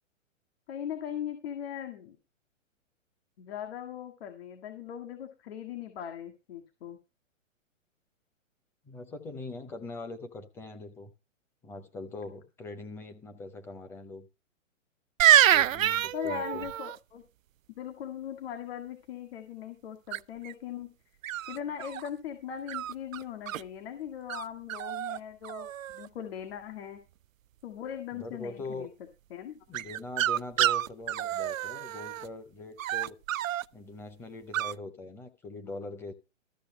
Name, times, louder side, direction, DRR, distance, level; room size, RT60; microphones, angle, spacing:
voice 1, 0.7-2.2 3.4-7.0 16.1-17.2 17.8-20.9 21.5-27.0 27.6-28.9 29.3-29.6, left 9 dB, 50° left, 1.9 m, -39 dB
voice 2, 8.8-11.1 11.6-14.3 15.5-16.7 28.1-28.9 29.7-33.2 33.7-36.1, left 3 dB, 5° left, 0.5 m, -42 dB
sound 1, 15.2-17.0 20.1-20.5 21.2-22.1 22.7-23.6 24.3-24.4 24.7-25.2 25.4-26.1 29.7-32.3 32.8-33.6 34.5-34.7, right 12 dB, 80° right, 0.5 m, -27 dB
13.5 x 6.9 x 5.4 m
hypercardioid pair, 140°, 39 cm